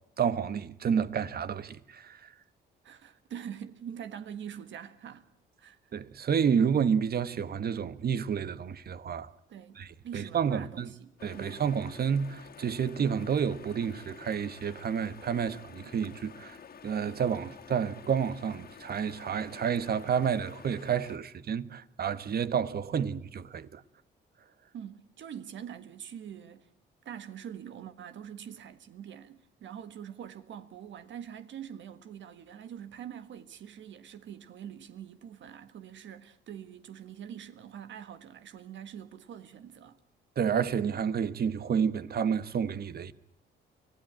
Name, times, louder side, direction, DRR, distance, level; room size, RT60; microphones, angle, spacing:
voice 1, 0.2-2.3 5.9-9.3 9.8-10.9 11.2-16.6 16.8-23.8 40.4-43.1, right 7 dB, 50° right, 1.2 m, -30 dB
voice 2, 2.8-5.2 5.6-5.8 9.5-11.5 24.7-26.7 27.0-40.0, right 9 dB, 70° right, 1.6 m, -44 dB
sound 1, 11.2-21.2, left 6 dB, 50° left, 2.2 m, -50 dB
24.5 x 16.5 x 8.9 m
cardioid pair, 90°, 20 cm